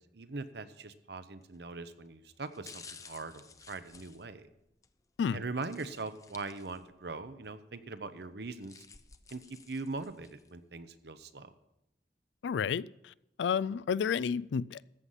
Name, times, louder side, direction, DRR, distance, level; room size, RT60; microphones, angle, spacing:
voice 1, 0.1-4.5 5.3-8.8 9.3-11.5, right 3 dB, 70° right, 0.8 m, -41 dB
sound 1, 1.4-1.7 2.4-4.9 5.6-7.1 7.4-7.5 8.3-10.5 11.0-11.1, left 5 dB, 20° left, 0.6 m, -54 dB
voice 2, 12.4-13.1 13.4-14.8, left 6 dB, 85° left, 0.3 m, -31 dB
14.0 x 8.1 x 5.7 m
head